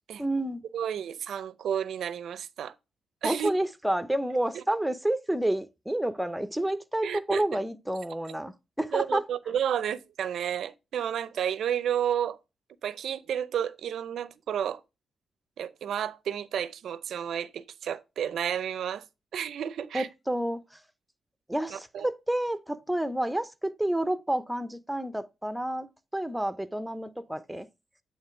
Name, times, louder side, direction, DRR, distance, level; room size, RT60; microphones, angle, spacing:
voice 1, 0.2-0.6 3.2-9.2 19.9-20.8 21.5-25.9 26.1-27.7, right 1 dB, 5° right, 0.7 m, -29 dB
voice 2, 0.7-2.7 3.2-3.5 4.5-4.6 7.0-7.6 8.9-12.4 12.8-14.8 15.6-19.1 19.3-20.1 21.7-22.1, right 9 dB, 80° right, 0.6 m, -31 dB
8.8 x 3.2 x 4.4 m
cardioid pair, 95°, 0 cm